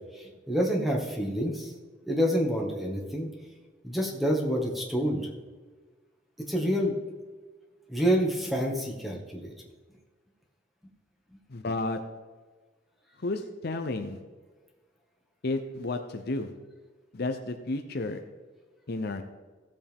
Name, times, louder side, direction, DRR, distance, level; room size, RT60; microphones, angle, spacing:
voice 1, 0.5-1.7 2.1-3.3 3.8-5.2 6.5-6.9 7.9-9.5, equal, ahead, -1 dB, 1.7 m, -27 dB
voice 2, 11.5-12.0 13.2-14.2 15.4-16.5 17.1-18.2 18.9-19.2, left 2 dB, 55° left, 7 dB, 0.7 m, -32 dB
16.5 x 7.4 x 3.6 m, 1.4 s
head